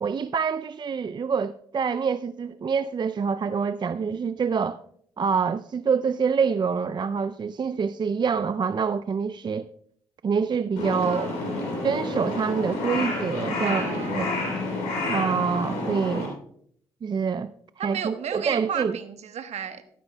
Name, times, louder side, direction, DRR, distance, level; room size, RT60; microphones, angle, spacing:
voice 1, 0.0-4.8 5.2-9.7 10.2-11.3 11.8-14.3 15.1-16.3 17.0-17.5 17.8-19.0, right 6 dB, 40° right, 0.4 m, -26 dB
Crow, 10.8-16.3, left 2 dB, 80° left, 3.4 m, -29 dB
voice 2, 11.0-11.4 13.7-14.3 17.8-19.8, right 8 dB, 65° right, 1.1 m, -33 dB
13.5 x 12.5 x 2.2 m
hypercardioid pair, 45°, 12 cm